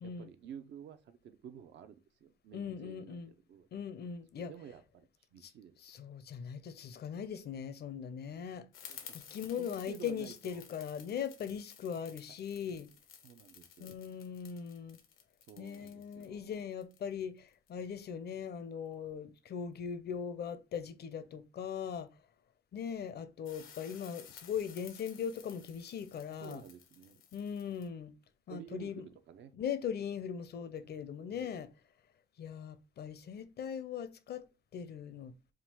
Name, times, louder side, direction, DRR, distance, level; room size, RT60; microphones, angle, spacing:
voice 1, 0.0-3.2 3.5-3.7 4.3-5.8 8.9-9.1 9.6-10.6 13.2-13.9 15.5-16.7 26.4-27.2 28.5-29.5 31.3-31.5, right 8 dB, 65° right, 0.6 m, -51 dB
voice 2, 2.5-3.3 3.7-4.5 5.4-5.5 5.8-8.7 9.1-12.9 13.8-15.0 15.6-22.1 22.7-26.6 27.3-28.1 28.5-29.1 29.5-31.7 32.4-34.4 34.7-35.3, left 7 dB, 55° left, 0.6 m, -40 dB
sound 1, 8.7-17.7 23.5-27.9, left 8 dB, 90° left, 0.9 m, -55 dB
3.7 x 2.4 x 4.4 m
cardioid pair, 90°, 20 cm